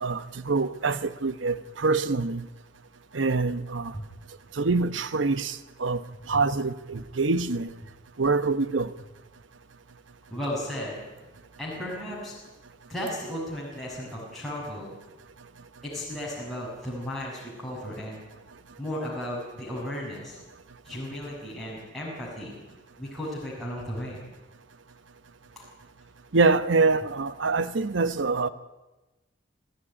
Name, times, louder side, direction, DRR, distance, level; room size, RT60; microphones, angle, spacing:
voice 1, 0.0-2.5 3.1-3.9 4.5-6.0 6.3-7.7 8.2-8.9 26.3-28.5, right 3 dB, 85° right, 1.0 m, -25 dB
voice 2, 10.3-11.0 11.6-12.3 12.9-15.0 15.8-18.2 18.8-20.4 20.8-22.6 23.0-24.2 25.6-25.7, left 1 dB, ahead, 6.3 m, -35 dB
27.0 x 15.5 x 10.0 m
head